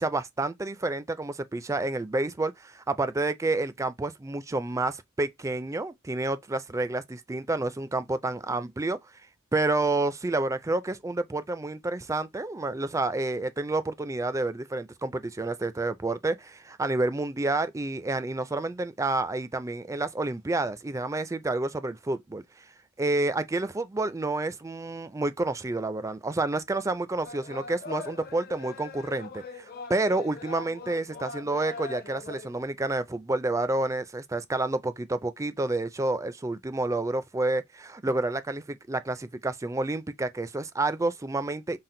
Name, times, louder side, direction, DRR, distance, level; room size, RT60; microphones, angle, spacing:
voice 1, 0.0-9.0 9.5-22.4 23.0-41.8, right 2 dB, 15° right, 0.4 m, -29 dB
sound 1, 27.2-32.6, left 3 dB, 45° left, 0.7 m, -41 dB
5.8 x 2.1 x 3.8 m
head